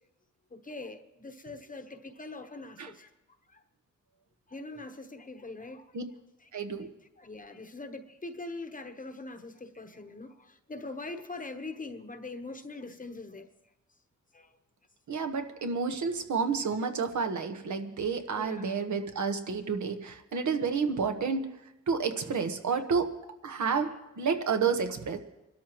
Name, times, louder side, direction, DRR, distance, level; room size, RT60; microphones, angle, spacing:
voice 1, 0.5-3.1 3.5-3.6 4.5-6.0 6.4-6.5 7.2-13.5 14.3-14.5 15.1-15.2 16.0-16.1 18.4-18.8 22.7-22.8, left 2 dB, 25° left, 6 dB, 1.0 m, -42 dB
voice 2, 6.5-6.9 15.1-21.5 21.9-23.1 23.4-25.2, right 5 dB, 70° right, 7 dB, 1.3 m, -30 dB
25.0 x 13.0 x 3.1 m, 0.95 s
cardioid pair, 85°, 30 cm